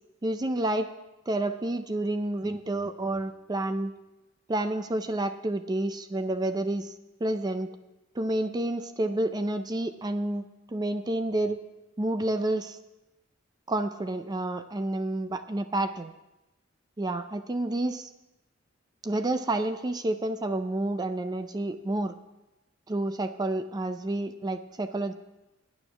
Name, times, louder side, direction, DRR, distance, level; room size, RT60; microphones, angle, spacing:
voice 1, 0.2-0.9 1.3-3.9 4.5-6.9 7.2-7.7 8.1-11.6 12.0-12.8 13.7-16.1 17.0-18.1 19.0-22.1 22.9-25.1, right 1 dB, 20° right, 9 dB, 0.4 m, -29 dB
9.8 x 9.2 x 5.9 m, 0.99 s
head